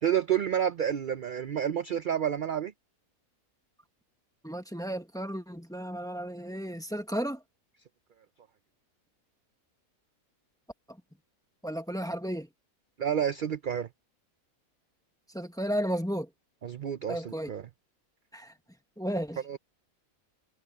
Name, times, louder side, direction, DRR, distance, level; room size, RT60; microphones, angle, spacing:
voice 1, 0.0-2.7 13.0-13.9 16.6-17.7 19.5-19.6, right 9 dB, 50° right, 0.6 m, -29 dB
voice 2, 4.4-7.4 11.6-12.5 15.3-16.3 17.1-17.5 18.3-18.5 19.0-19.4, equal, 5° left, 1.3 m, -33 dB
omnidirectional pair, 1.5 m